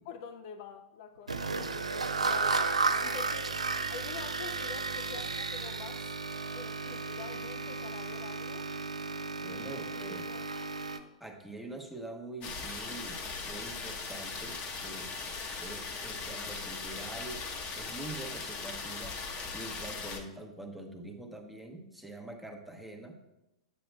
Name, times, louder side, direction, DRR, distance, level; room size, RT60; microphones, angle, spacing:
voice 1, 0.0-6.1 6.5-8.7 10.0-10.5, left 7 dB, 45° left, 0.4 m, -47 dB
sound 1, 1.3-11.0, right 4 dB, 80° right, 0.4 m, -33 dB
voice 2, 9.4-10.3 11.2-15.1 15.6-17.4 17.8-19.2 19.5-23.2, right 2 dB, ahead, 0.9 m, -44 dB
sound 2, 12.4-20.2, left 4 dB, 30° left, 0.8 m, -39 dB
9.1 x 7.6 x 2.2 m
figure-of-eight pair, 100°, 3 cm